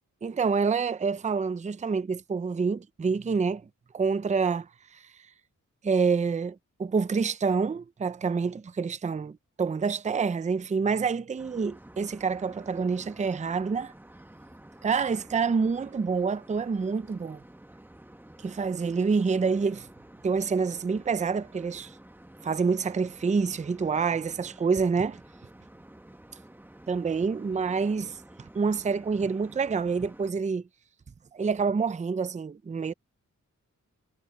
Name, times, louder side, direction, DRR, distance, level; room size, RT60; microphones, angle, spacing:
voice 1, 0.2-3.6 3.9-4.7 5.8-13.9 14.8-17.4 18.4-19.9 20.2-21.9 22.4-25.2 26.9-28.2 28.5-30.6 31.3-32.9, right 5 dB, 25° right, 0.5 m, -27 dB
sound 1, 11.4-30.3, right 1 dB, 5° right, 1.0 m, -51 dB
wide cardioid pair, 135°, 31 cm